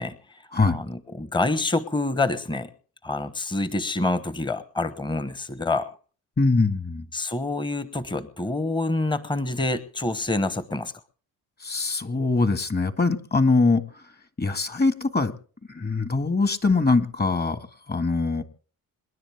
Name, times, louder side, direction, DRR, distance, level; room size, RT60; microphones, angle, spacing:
voice 1, 0.0-0.4 0.7-2.7 3.0-5.9 7.1-10.9, left 2 dB, 15° left, 13 dB, 1.2 m, -27 dB
voice 2, 6.4-7.1 11.6-13.8 14.4-15.3 15.7-17.6 17.9-18.4, left 3 dB, 30° left, 9 dB, 1.9 m, -22 dB
27.5 x 10.5 x 3.5 m, 0.41 s
cardioid pair, 90°, 34 cm